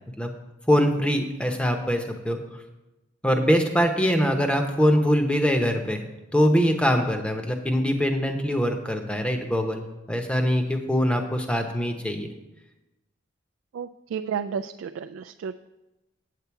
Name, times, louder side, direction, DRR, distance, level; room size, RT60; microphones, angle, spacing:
voice 1, 0.7-2.6 3.2-6.0 6.3-12.3, equal, 5° left, 5 dB, 0.7 m, -23 dB
voice 2, 13.7-15.7, right 7 dB, 90° right, 8 dB, 0.3 m, -32 dB
8.3 x 7.9 x 4.6 m, 1.0 s
head